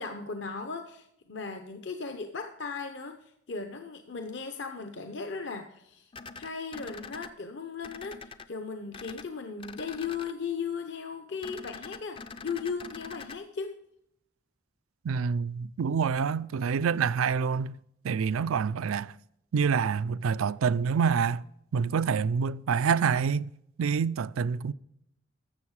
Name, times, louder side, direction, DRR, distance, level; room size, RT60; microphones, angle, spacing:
voice 1, 0.0-13.8, left 5 dB, 60° left, 0.7 m, -37 dB
sound 1, 6.1-7.3 7.8-8.5 8.9-9.3 9.6-10.3 11.4-13.4, left 4 dB, 25° left, 0.4 m, -44 dB
voice 2, 15.0-17.8 18.0-19.1 19.5-21.4 21.7-23.5 23.8-24.7, right 6 dB, 90° right, 0.4 m, -27 dB
13.0 x 7.3 x 4.8 m
head